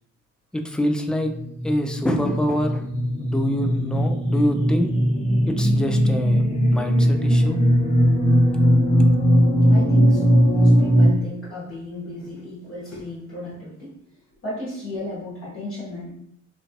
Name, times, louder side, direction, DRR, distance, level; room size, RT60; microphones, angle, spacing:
voice 1, 0.5-1.3 1.6-2.9 3.2-4.9 5.5-7.6, equal, 5° left, 5 dB, 0.3 m, -25 dB
sound 1, 1.3-11.1, equal, 20° left, 0.8 m, -19 dB
voice 2, 9.7-13.9 14.4-16.1, left 2 dB, 45° left, -8 dB, 1.2 m, -34 dB
3.0 x 2.4 x 2.9 m, 0.74 s
cardioid pair, 90°, 30 cm